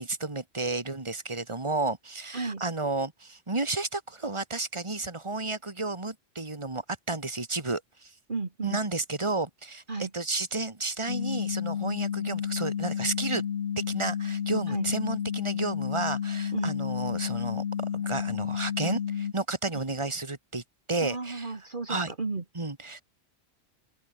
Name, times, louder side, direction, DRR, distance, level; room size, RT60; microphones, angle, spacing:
voice 1, 0.0-8.1 8.6-13.4 13.8-17.6 17.9-20.6 20.9-21.5 21.9-22.1 22.5-23.0, right 3 dB, 25° right, 2.4 m, -32 dB
voice 2, 8.3-8.8 9.9-10.1 14.7-14.9 16.5-16.7 21.0-22.4, right 3 dB, 50° right, 2.1 m, -33 dB
sound 1, 11.1-19.3, left 8 dB, 60° left, 1.1 m, -31 dB
open air
omnidirectional pair, 1.1 m